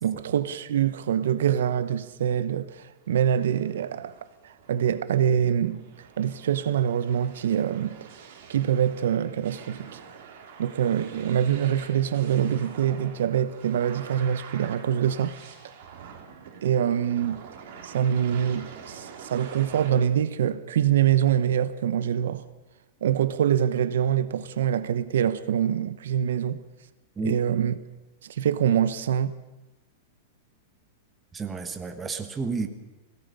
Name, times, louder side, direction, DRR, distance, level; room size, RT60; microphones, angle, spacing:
voice 1, 0.0-4.2 4.7-5.8 6.2-8.0 8.5-10.0 10.6-15.3 16.6-17.4 17.8-22.4 23.0-26.6 27.2-27.7 28.2-29.3, right 9 dB, 85° right, 1.0 m, -24 dB
sound 1, 3.1-19.9, right 6 dB, 55° right, 3.7 m, -46 dB
voice 2, 31.3-32.7, right 4 dB, 10° right, 1.3 m, -31 dB
21.5 x 17.5 x 6.9 m
supercardioid pair, 165°, 0 cm